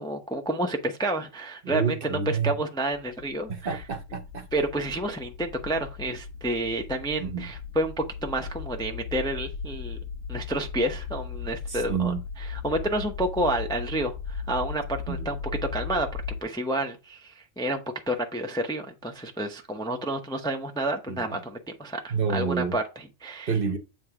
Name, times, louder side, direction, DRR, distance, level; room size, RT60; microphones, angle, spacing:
voice 1, 0.0-3.8 4.5-10.0 10.3-15.4 15.7-16.1 16.4-17.8 18.1-23.5, right 1 dB, 5° left, 0.6 m, -30 dB
voice 2, 1.6-2.5 3.5-4.5 7.2-7.5 11.7-12.2 15.1-15.3 21.1-21.4 22.1-22.8 23.5-23.8, right 5 dB, 50° right, 1.0 m, -29 dB
sound 1, 2.9-16.4, left 6 dB, 80° left, 0.9 m, -37 dB
7.9 x 3.3 x 4.8 m
omnidirectional pair, 1.3 m